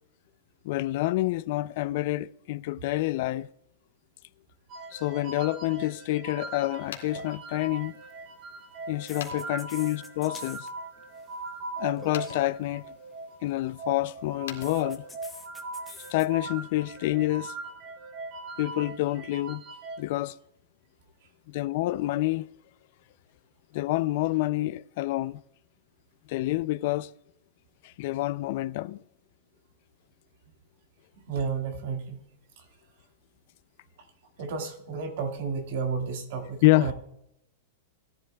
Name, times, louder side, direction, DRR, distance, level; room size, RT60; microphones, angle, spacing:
voice 1, 0.6-3.5 4.9-7.9 8.9-10.7 11.8-12.9 13.4-15.0 15.9-17.5 18.6-19.6 20.0-20.4 21.5-22.5 23.7-25.4 26.3-27.1 27.8-29.0 36.6-36.9, left 17 dB, 40° left, 0.3 m, -28 dB
sound 1, 4.7-20.0, right 3 dB, 25° right, 1.0 m, -40 dB
sound 2, 6.7-15.5, left 9 dB, 75° left, 2.0 m, -48 dB
sound 3, 7.9-8.1 9.1-10.7 11.0-11.3 12.0-12.4 14.6-16.3, left 3 dB, 5° left, 0.8 m, -47 dB
voice 2, 31.2-32.3 32.6-32.7 34.4-36.9, right 5 dB, 50° right, 1.8 m, -32 dB
18.5 x 11.0 x 2.3 m
supercardioid pair, 175°, 0 cm